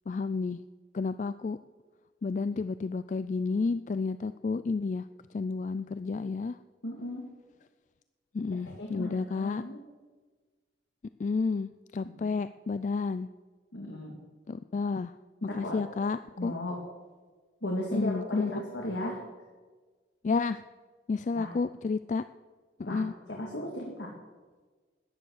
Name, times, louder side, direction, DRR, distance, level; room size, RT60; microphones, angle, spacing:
voice 1, 0.1-0.6 0.9-1.6 2.2-5.1 5.3-6.6 8.3-9.6 11.2-13.3 14.5-15.1 15.4-16.5 17.9-18.5 20.2-20.6 21.1-22.2 22.8-23.1, left 4 dB, 40° left, 13 dB, 0.3 m, -31 dB
voice 2, 6.8-7.3 8.5-9.8 13.7-14.2 15.5-15.8 16.4-16.8 17.6-19.2 21.3-21.5 22.9-23.0 23.3-24.1, left 1 dB, 80° left, 0 dB, 2.2 m, -35 dB
13.5 x 10.5 x 6.4 m, 1.4 s
head